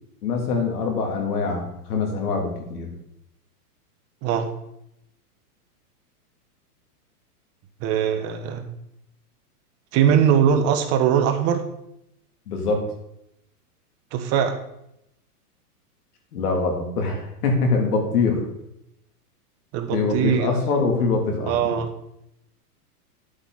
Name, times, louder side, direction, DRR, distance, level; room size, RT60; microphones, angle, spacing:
voice 1, 0.2-2.9 12.5-12.8 16.3-18.4 19.9-21.7, left 4 dB, 75° left, 2 dB, 3.3 m, -24 dB
voice 2, 7.8-8.6 9.9-11.6 14.1-14.6 16.8-17.1 19.7-20.5 21.5-21.9, right 8 dB, 30° right, 6 dB, 1.1 m, -21 dB
11.5 x 8.1 x 4.2 m, 0.80 s
hypercardioid pair, 140°, 46 cm